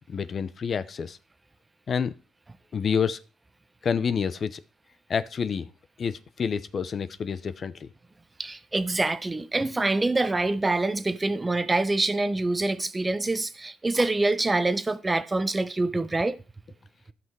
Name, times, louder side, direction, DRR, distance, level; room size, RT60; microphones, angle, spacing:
voice 1, 0.1-1.2 1.9-2.1 2.7-3.2 3.8-4.6 5.1-5.7 6.0-7.9, left 6 dB, 45° left, 0.7 m, -28 dB
voice 2, 8.4-16.4, right 2 dB, 20° right, 0.9 m, -25 dB
15.0 x 5.9 x 4.7 m
cardioid pair, 90°, 0 cm